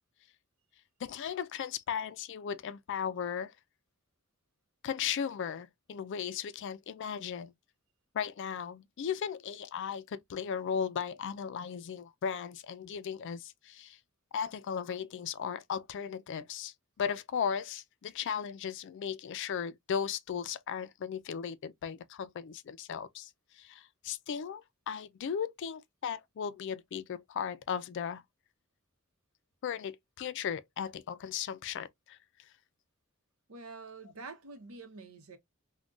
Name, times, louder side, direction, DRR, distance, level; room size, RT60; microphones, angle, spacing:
voice 1, 1.0-3.5 4.8-7.5 8.1-14.0 14.3-23.3 23.6-28.2 29.6-32.2, left 7 dB, 60° left, 0.3 m, -36 dB
voice 2, 33.5-35.4, right 3 dB, 80° right, 0.7 m, -47 dB
3.7 x 2.2 x 2.3 m
head